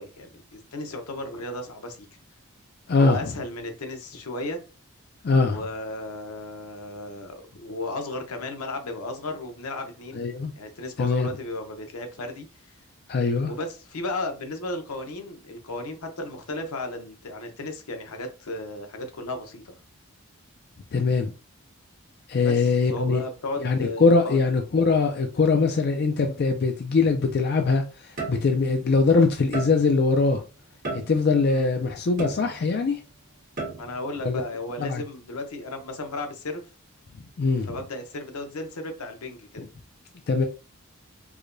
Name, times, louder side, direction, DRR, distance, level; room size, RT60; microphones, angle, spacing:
voice 1, 0.0-2.0 3.0-4.6 5.4-10.2 10.6-12.5 13.4-19.7 22.4-24.4 31.5-31.7 33.7-36.6 37.7-39.7, left 2 dB, 85° left, 0.8 m, -34 dB
voice 2, 2.9-3.3 5.2-5.6 10.1-10.5 11.0-11.3 13.1-13.5 20.9-21.3 22.3-23.2 23.6-30.4 30.9-33.0 34.2-34.4 34.8-35.0 37.4-37.8 39.6-39.7 40.3-40.5, left 4 dB, 45° left, 0.4 m, -22 dB
sound 1, 27.0-27.2 28.2-28.8 29.5-30.1 30.8-31.5 32.2-32.9 33.6-34.1, right 3 dB, 40° right, 1.2 m, -34 dB
4.8 x 2.2 x 2.5 m
head